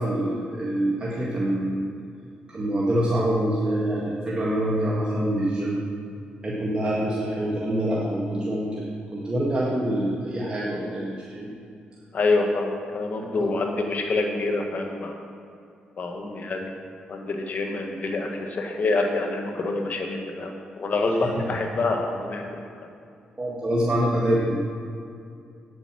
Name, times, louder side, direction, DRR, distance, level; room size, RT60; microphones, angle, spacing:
voice 1, 0.0-1.9 2.5-5.8 6.4-11.5 13.4-13.5 16.2-16.4 23.4-24.6, right 1 dB, 30° right, -5 dB, 1.8 m, -25 dB
voice 2, 12.1-15.2 16.0-16.7 17.1-22.4, left 3 dB, 55° left, 2 dB, 1.6 m, -26 dB
9.0 x 8.0 x 6.1 m, 2.4 s
cardioid pair, 70°, 3 cm